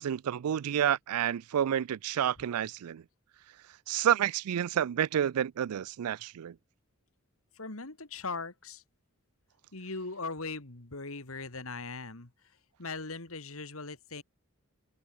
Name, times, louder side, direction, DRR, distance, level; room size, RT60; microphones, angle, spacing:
voice 1, 0.0-3.0 3.9-6.5, right 9 dB, 85° right, 0.4 m, -29 dB
voice 2, 7.5-8.8 9.7-12.3 12.8-14.2, left 3 dB, 70° left, 2.4 m, -39 dB
head